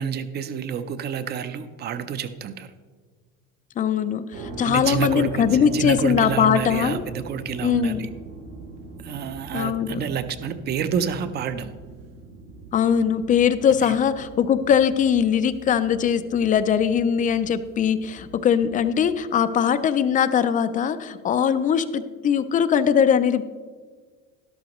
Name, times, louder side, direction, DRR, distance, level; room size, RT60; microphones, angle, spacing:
voice 1, 0.0-2.7 4.6-8.1 9.0-11.7 13.8-14.0, right 7 dB, 30° right, 12 dB, 0.5 m, -29 dB
voice 2, 3.8-7.0 7.6-8.0 9.5-10.0 12.7-23.4, left 8 dB, 25° left, 12 dB, 0.4 m, -21 dB
sound 1, 4.3-19.2, right 3 dB, 70° right, 1.7 m, -41 dB
12.5 x 12.0 x 3.0 m, 1.5 s
cardioid pair, 160°, 31 cm